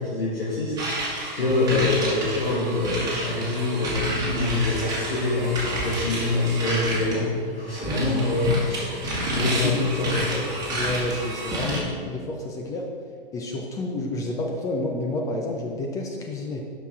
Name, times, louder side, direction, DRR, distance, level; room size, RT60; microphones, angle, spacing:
voice 1, 0.0-10.5, left 2 dB, 85° left, -8 dB, 2.0 m, -25 dB
sound 1, 0.8-7.2 7.7-11.8, right 1 dB, 15° right, 1.8 m, -29 dB
voice 2, 10.7-12.8 13.3-16.6, left 2 dB, 10° left, 1 dB, 0.4 m, -30 dB
6.8 x 5.8 x 4.7 m, 2.1 s
figure-of-eight pair, 120°, 29 cm